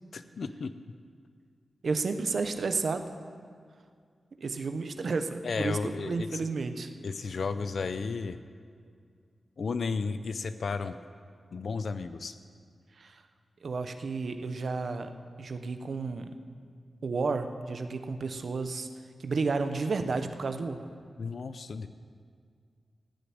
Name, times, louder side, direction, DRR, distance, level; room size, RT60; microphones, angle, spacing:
voice 1, 0.1-0.9 5.4-6.4 7.0-8.4 9.6-11.0 11.5-12.3 21.2-21.9, left 4 dB, 60° left, 11 dB, 0.5 m, -33 dB
voice 2, 1.8-3.1 4.4-6.9 13.0-13.2 13.6-15.1 15.4-16.3 17.0-18.9 19.2-20.9, right 4 dB, 55° right, 7 dB, 0.9 m, -32 dB
15.5 x 6.9 x 9.3 m, 2.2 s
wide cardioid pair, 145°, 0 cm